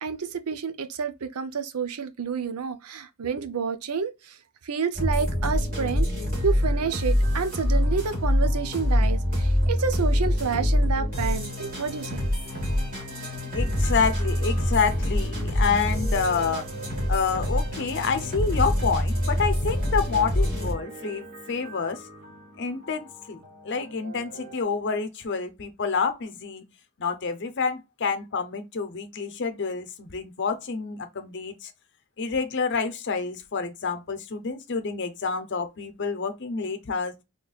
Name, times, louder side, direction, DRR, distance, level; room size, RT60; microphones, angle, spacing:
voice 1, 0.0-4.4 4.6-6.1 6.4-12.2, right 6 dB, 85° right, 0.6 m, -29 dB
sound 1, 4.9-24.6, left 1 dB, 40° right, 2.3 m, -26 dB
voice 2, 13.5-16.7 17.1-22.1 22.6-26.6 27.0-31.7 32.2-37.1, left 5 dB, 50° left, 0.6 m, -28 dB
4.0 x 3.1 x 2.3 m
head